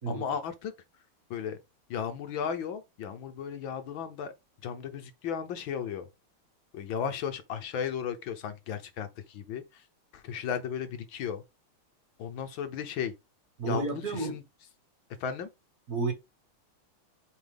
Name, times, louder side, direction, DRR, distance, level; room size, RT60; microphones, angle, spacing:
voice 1, 0.1-0.7 1.3-1.6 1.9-4.3 4.6-6.1 6.7-9.6 10.1-11.4 12.2-13.1 13.7-14.4 15.2-15.5, left 7 dB, 70° left, 1.5 m, -35 dB
voice 2, 13.6-14.4 15.9-16.1, right 4 dB, 45° right, 1.9 m, -31 dB
8.4 x 4.1 x 3.5 m
omnidirectional pair, 2.4 m